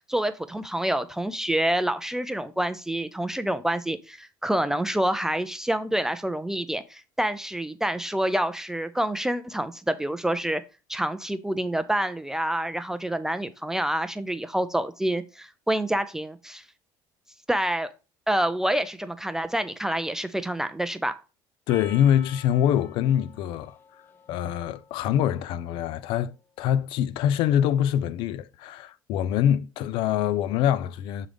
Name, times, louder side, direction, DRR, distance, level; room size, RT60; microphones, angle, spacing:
voice 1, 0.1-10.6 10.9-16.6 17.5-17.9 18.3-21.2, right 1 dB, 5° right, 0.4 m, -27 dB
voice 2, 21.7-23.8 24.3-31.3, left 10 dB, 70° left, 0.4 m, -24 dB
Percussion, 21.7-26.2, left 5 dB, 25° left, 0.7 m, -49 dB
7.5 x 3.7 x 3.4 m
cardioid pair, 120°, 9 cm